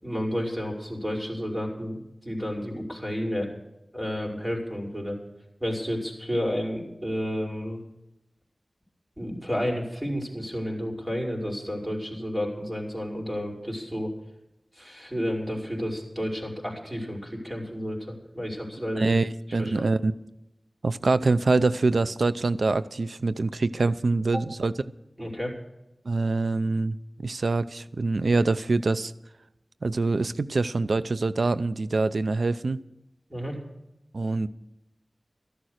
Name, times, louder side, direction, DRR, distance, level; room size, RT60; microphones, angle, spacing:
voice 1, 0.0-3.5 3.9-5.2 5.6-7.8 9.2-14.1 14.8-19.1 19.6-19.9 25.2-25.5 33.3-33.6, equal, 15° right, -1 dB, 5.5 m, -31 dB
voice 2, 18.9-20.2 20.8-24.7 26.0-27.0 27.2-29.1 29.8-32.8 34.1-34.5, right 3 dB, 85° right, 14 dB, 0.6 m, -25 dB
13.5 x 11.5 x 6.5 m, 0.87 s
wide cardioid pair, 45°, 0 cm